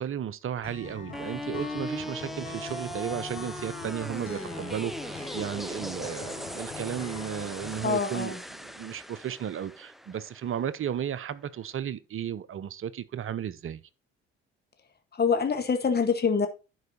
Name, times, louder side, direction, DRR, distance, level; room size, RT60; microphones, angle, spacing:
voice 1, 0.0-8.4 8.6-13.8, right 9 dB, 45° right, 0.9 m, -34 dB
Acoustic guitar, 0.6-7.8, left 4 dB, 80° left, 4.5 m, -42 dB
sound 1, 1.1-11.2, equal, ahead, 0.7 m, -39 dB
voice 2, 7.8-8.4 15.1-16.5, left 5 dB, 30° left, 1.7 m, -25 dB
11.0 x 4.7 x 4.3 m
hypercardioid pair, 50°, 30 cm